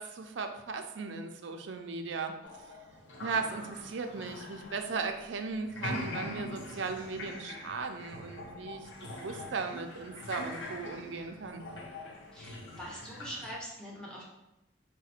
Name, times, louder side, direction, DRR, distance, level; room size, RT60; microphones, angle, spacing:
voice 1, 0.0-2.3 3.2-11.6, right 4 dB, 80° right, 6 dB, 0.5 m, -37 dB
sound 1, 2.4-5.4 5.7-13.5, left 1 dB, 85° left, 0.7 m, -43 dB
voice 2, 12.3-14.2, equal, 5° left, -5 dB, 0.9 m, -43 dB
4.8 x 2.2 x 4.3 m, 0.95 s
head